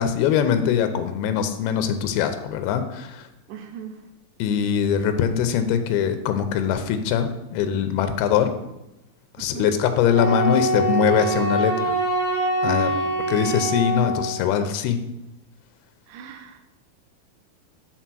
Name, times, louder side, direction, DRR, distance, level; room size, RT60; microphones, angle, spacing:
voice 1, 0.0-3.3 4.4-8.5 9.4-11.9 12.6-13.0 13.3-15.0, left 8 dB, 85° left, 9 dB, 2.7 m, -22 dB
voice 2, 3.5-4.0 9.4-9.7 12.6-13.1 16.1-16.6, right 7 dB, 90° right, 6 dB, 1.8 m, -35 dB
Wind instrument woodwind instrument, 10.1-14.4, right 1 dB, 15° right, 1.3 m, -24 dB
9.3 x 4.0 x 6.1 m, 0.91 s
omnidirectional pair, 4.5 m